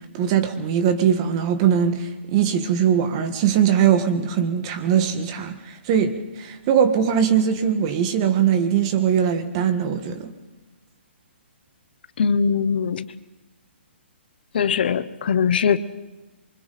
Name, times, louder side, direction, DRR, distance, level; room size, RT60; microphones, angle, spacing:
voice 1, 0.1-10.3, right 8 dB, 25° right, 1.7 m, -21 dB
voice 2, 12.2-13.1 14.5-15.8, left 6 dB, 50° left, 1.0 m, -21 dB
27.0 x 24.5 x 4.2 m
hypercardioid pair, 170°, 7 cm